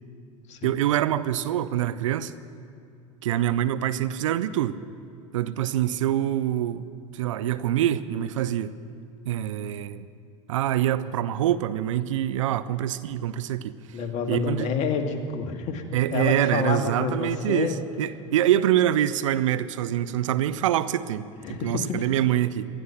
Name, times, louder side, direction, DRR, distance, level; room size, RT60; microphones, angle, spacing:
voice 1, 0.6-2.3 3.2-4.8 5.3-6.8 7.1-8.7 9.3-10.1 10.5-13.7 14.3-14.7 15.9-22.7, right 12 dB, 75° right, 16 dB, 0.6 m, -25 dB
voice 2, 13.9-15.8 16.1-17.8 21.4-22.1, left 5 dB, 45° left, 5 dB, 1.9 m, -28 dB
19.0 x 13.0 x 5.8 m, 2.5 s
hypercardioid pair, 85°, 16 cm